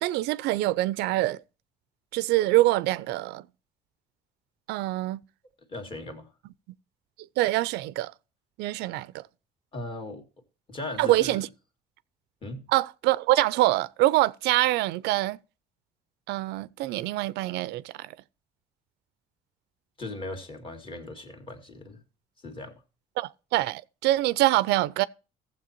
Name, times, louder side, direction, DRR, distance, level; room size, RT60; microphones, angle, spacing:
voice 1, 0.0-1.4 2.1-3.4 4.7-5.2 7.4-8.1 8.6-9.3 11.0-11.5 12.7-15.4 16.3-18.1 23.2-25.1, right 17 dB, 85° right, 0.5 m, -25 dB
voice 2, 5.7-6.3 9.7-10.2 10.7-11.4 12.4-12.7 20.0-22.0 22.4-22.8, left 2 dB, 30° left, 2.1 m, -38 dB
15.0 x 7.4 x 2.9 m
cardioid pair, 110°, 17 cm